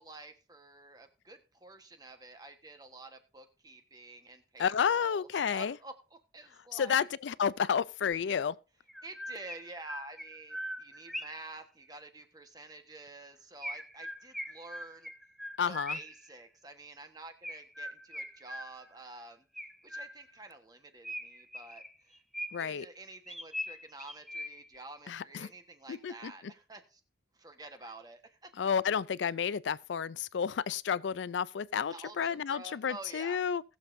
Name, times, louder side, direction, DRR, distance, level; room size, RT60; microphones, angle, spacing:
voice 1, 0.0-7.0 8.3-8.4 9.0-15.1 15.7-19.4 19.8-22.2 22.6-27.0 27.3-28.5 31.9-33.4, right 2 dB, 20° right, 1.3 m, -49 dB
voice 2, 4.6-5.7 6.7-8.5 15.6-16.0 22.5-22.9 25.1-25.5 25.9-26.3 28.6-33.6, left 7 dB, 80° left, 0.4 m, -31 dB
Chirp tweet, 8.9-11.5 13.6-16.3 17.4-19.0 19.5-20.4 21.0-22.8 23.3-24.8, equal, ahead, 0.6 m, -42 dB
19.5 x 7.2 x 2.6 m
head